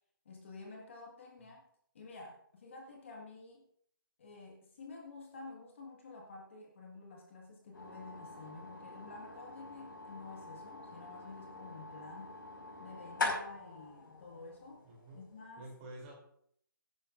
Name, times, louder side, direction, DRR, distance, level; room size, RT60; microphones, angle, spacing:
voice 1, 0.3-1.7 1.9-3.6 4.2-12.4 12.8-14.8 15.1-15.7, left 3 dB, 35° left, 0 dB, 1.8 m, -50 dB
sound 1, 7.7-15.5, left 3 dB, 65° left, 5.3 m, -43 dB
voice 2, 14.8-15.2 15.6-16.1, right 1 dB, 15° right, -3 dB, 3.2 m, -49 dB
18.5 x 11.0 x 2.6 m, 0.68 s
hypercardioid pair, 175°, 12 cm